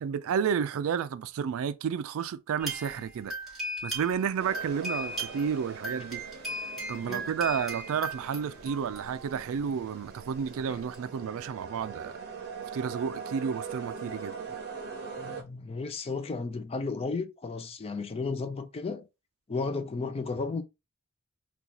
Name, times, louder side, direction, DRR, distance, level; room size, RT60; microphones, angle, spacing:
voice 1, 0.0-3.3 3.8-6.2 6.9-12.2 12.7-14.3, right 7 dB, 65° right, 0.3 m, -31 dB
sound 1, 2.6-4.3 4.5-9.6 10.5-10.6 10.9-11.0, right 1 dB, ahead, 1.8 m, -38 dB
sound 2, 4.4-15.4, right 5 dB, 50° right, 0.7 m, -42 dB
voice 2, 15.2-19.0 19.5-20.6, left 4 dB, 25° left, 0.4 m, -34 dB
3.9 x 2.3 x 2.9 m
head